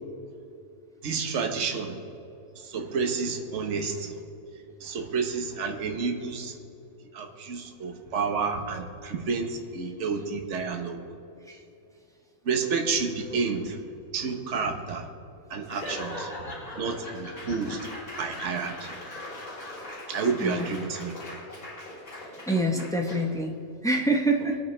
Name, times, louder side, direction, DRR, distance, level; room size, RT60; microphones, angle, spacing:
voice 1, 1.0-2.0 2.6-4.1 4.8-6.5 7.1-11.0 12.4-13.8 14.1-15.1 15.5-16.3 16.8-17.8 18.2-18.9 20.1-21.1, right 5 dB, 50° right, 4 dB, 1.4 m, -30 dB
Laughter / Applause / Crowd, 15.6-23.4, left 1 dB, 80° left, 3.9 m, -40 dB
voice 2, 20.4-20.7 22.5-23.6 23.8-24.6, right 1 dB, 5° left, 1 dB, 0.6 m, -26 dB
22.5 x 9.0 x 3.3 m, 2.8 s
omnidirectional pair, 1.8 m